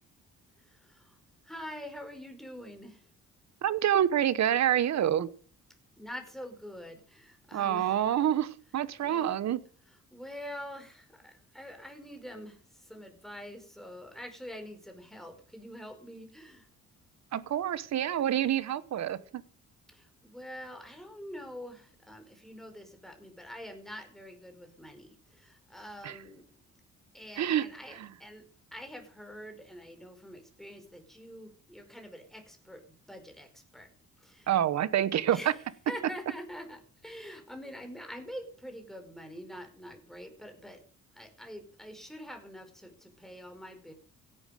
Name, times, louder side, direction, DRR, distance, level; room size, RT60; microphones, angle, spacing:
voice 1, 0.6-1.2 1.4-3.1 6.0-8.0 9.0-9.4 9.8-16.7 19.9-26.5 27.1-28.4 28.7-33.9 34.2-34.6 35.3-40.8 41.1-43.9, equal, ahead, 5 dB, 4.9 m, -45 dB
voice 2, 3.6-5.3 7.5-9.6 17.3-19.4 26.0-26.2 27.4-27.7 34.5-35.5, right 10 dB, 65° right, 16 dB, 1.3 m, -27 dB
16.0 x 11.5 x 5.1 m, 0.41 s
cardioid pair, 90°, 30 cm